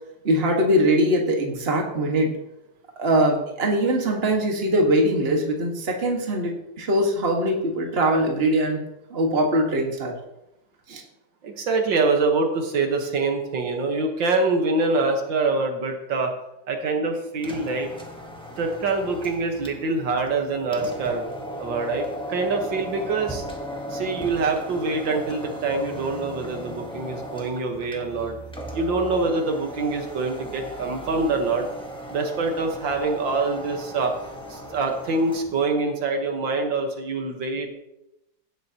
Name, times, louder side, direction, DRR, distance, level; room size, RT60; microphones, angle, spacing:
voice 1, 0.2-2.3 3.0-8.8 9.1-10.1 10.9-11.0, right 1 dB, 35° right, 1 dB, 1.7 m, -22 dB
voice 2, 11.4-16.3 16.7-17.9 18.6-21.3 21.6-23.4 23.9-28.4 28.7-31.7 32.1-34.1 34.5-37.7, right 3 dB, 75° right, 3 dB, 2.0 m, -25 dB
sound 1, 17.3-35.6, equal, 5° left, 1.1 m, -37 dB
17.0 x 7.6 x 2.9 m, 0.87 s
omnidirectional pair, 2.1 m